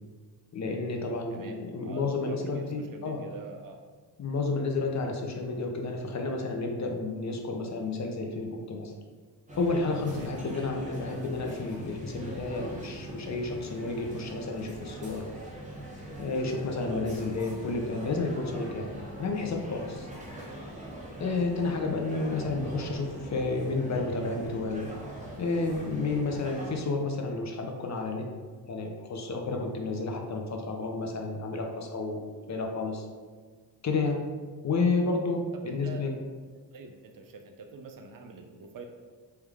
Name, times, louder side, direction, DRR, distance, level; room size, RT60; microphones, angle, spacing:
voice 1, 0.5-3.2 4.2-8.9 9.6-15.3 16.2-18.9 19.2-20.1 21.2-24.9 25.4-32.2 32.5-33.1 33.8-34.2 34.6-36.2, left 3 dB, 40° left, 2 dB, 0.5 m, -31 dB
voice 2, 1.3-3.8 10.1-10.3 16.9-17.0 35.5-36.0 36.7-38.9, right 3 dB, 50° right, 4 dB, 0.5 m, -45 dB
sound 1, 9.5-26.7, right 1 dB, 15° right, 0.7 m, -42 dB
3.4 x 3.1 x 3.4 m, 1.5 s
cardioid pair, 115°, 43 cm